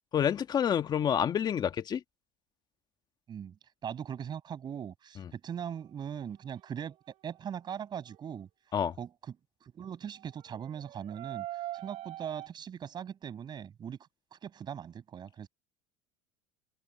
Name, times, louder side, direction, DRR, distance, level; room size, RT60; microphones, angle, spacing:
voice 1, 0.1-2.0 5.2-5.3 8.7-8.9, left 8 dB, 30° left, 1.5 m, -28 dB
voice 2, 3.8-7.0 7.2-8.5 9.0-9.3 9.6-11.5 11.7-14.0 14.3-15.5, right 8 dB, 30° right, 7.0 m, -40 dB
sound 1, 5.5-8.5 10.2-12.5, right 15 dB, 50° right, 6.2 m, -45 dB
supercardioid pair, 125°, 14 cm